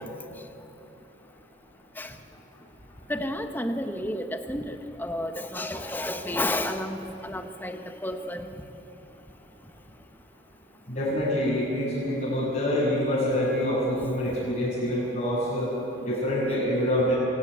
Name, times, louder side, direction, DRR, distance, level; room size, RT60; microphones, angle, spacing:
voice 1, 3.1-8.4, left 1 dB, 10° left, 7 dB, 1.2 m, -31 dB
voice 2, 10.9-15.7 16.1-17.2, equal, 40° left, -9 dB, 7.1 m, -26 dB
24.5 x 18.0 x 9.6 m, 2.9 s
head